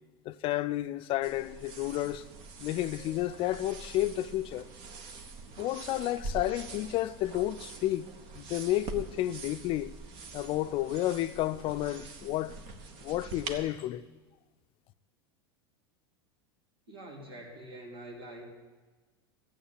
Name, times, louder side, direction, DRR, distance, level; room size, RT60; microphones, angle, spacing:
voice 1, 0.2-2.3 2.6-4.7 5.6-8.1 8.3-9.9 10.3-12.6 13.0-14.0, left 14 dB, 45° left, 0.5 m, -31 dB
sound 1, 1.2-13.6, right 4 dB, 55° right, 1.6 m, -44 dB
voice 2, 16.9-18.5, right 1 dB, 80° right, 3.4 m, -45 dB
14.0 x 8.4 x 8.3 m
hypercardioid pair, 85°, 13 cm